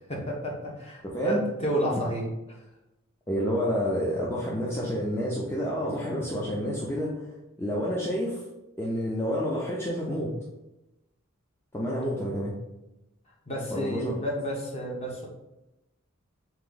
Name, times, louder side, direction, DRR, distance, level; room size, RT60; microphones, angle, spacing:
voice 1, 0.1-2.2 13.5-15.3, equal, 30° left, -2 dB, 1.0 m, -31 dB
voice 2, 3.3-7.2 7.6-8.4 8.8-10.3 11.7-12.6 13.7-14.1, equal, 10° left, -5 dB, 0.5 m, -29 dB
3.5 x 2.9 x 3.8 m, 0.95 s
head